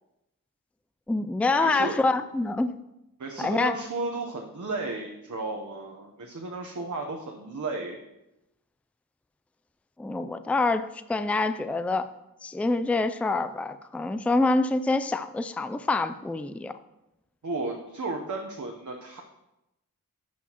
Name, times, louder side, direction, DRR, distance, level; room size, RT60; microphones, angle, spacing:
voice 1, 1.1-2.8 3.4-3.7 10.0-12.1 12.4-16.7, left 3 dB, 5° left, 11 dB, 0.4 m, -26 dB
voice 2, 1.6-2.0 3.2-8.0 17.4-19.2, right 3 dB, 55° right, 1 dB, 1.0 m, -33 dB
11.5 x 6.1 x 3.0 m, 0.91 s
wide cardioid pair, 50°, 35 cm